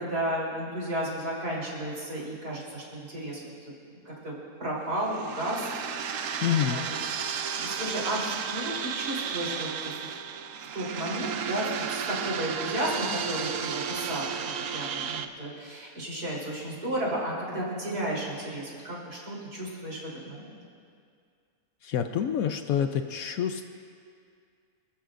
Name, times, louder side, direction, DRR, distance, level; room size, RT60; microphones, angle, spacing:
voice 1, 0.0-3.7 4.1-4.3 4.6-5.6 6.0-7.0 7.6-10.1 10.7-20.6, right 1 dB, 90° right, -5 dB, 4.2 m, -33 dB
sound 1, 5.0-15.2, right 7 dB, 65° right, 1.0 m, -33 dB
voice 2, 6.4-6.8 21.8-23.7, left 9 dB, 70° left, 7 dB, 1.0 m, -27 dB
26.0 x 14.5 x 2.5 m, 2.3 s
omnidirectional pair, 1.6 m